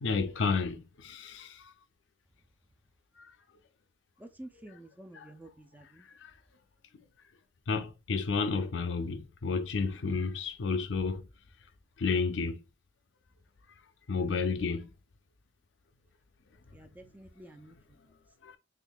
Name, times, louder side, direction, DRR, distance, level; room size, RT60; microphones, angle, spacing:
voice 1, 0.0-1.7 3.2-3.3 5.1-5.3 6.2-6.3 7.7-11.2 12.0-12.6 14.1-14.9 18.4-18.6, left 4 dB, 65° left, 0.5 m, -31 dB
voice 2, 4.2-6.1 14.1-14.6 16.7-17.8, right 1 dB, 10° right, 0.3 m, -50 dB
3.6 x 3.4 x 2.3 m
head